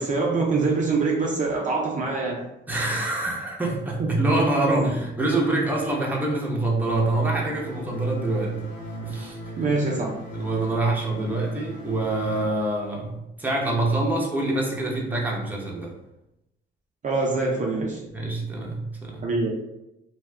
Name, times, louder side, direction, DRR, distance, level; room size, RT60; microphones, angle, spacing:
voice 1, 0.0-2.5 4.0-4.2 4.7-4.9 9.6-10.3 17.0-18.1 19.2-19.5, right 3 dB, 40° right, -2 dB, 0.5 m, -25 dB
voice 2, 2.7-8.6 9.0-9.4 10.3-15.9 18.1-19.3, right 2 dB, 10° right, -3 dB, 0.8 m, -25 dB
sound 1, 6.9-12.5, right 3 dB, 65° left, 1.2 m, -37 dB
2.7 x 2.3 x 3.2 m, 0.89 s
cardioid pair, 90°, 20 cm